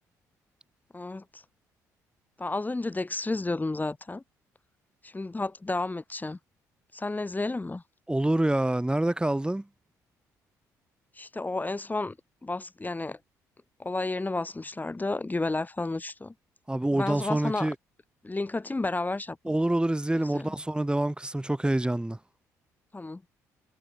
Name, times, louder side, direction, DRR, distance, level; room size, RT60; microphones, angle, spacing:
voice 1, 0.9-1.4 2.4-4.2 5.0-6.4 6.9-7.8 11.2-12.2 12.4-13.2 13.8-16.3 16.9-17.7 18.2-19.4 20.2-20.5 22.9-23.2, left 2 dB, 20° left, 6.0 m, -31 dB
voice 2, 8.1-9.6 16.7-17.7 19.4-22.2, right 1 dB, 10° right, 6.4 m, -26 dB
hypercardioid pair, 50°, 8 cm